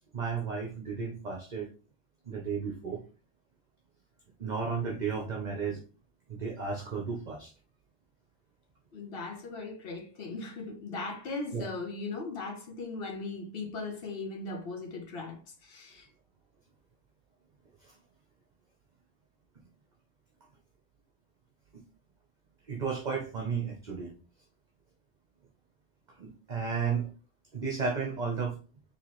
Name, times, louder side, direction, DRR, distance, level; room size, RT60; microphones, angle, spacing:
voice 1, 0.1-1.7 2.3-3.0 4.4-5.8 6.3-7.5 11.5-11.7 17.8-18.0 22.7-24.1 26.2-27.1 27.5-28.6, right 5 dB, 45° right, 0.8 m, -33 dB
voice 2, 8.9-16.1, left 3 dB, 60° left, 1.1 m, -38 dB
4.5 x 3.1 x 3.0 m
omnidirectional pair, 1.1 m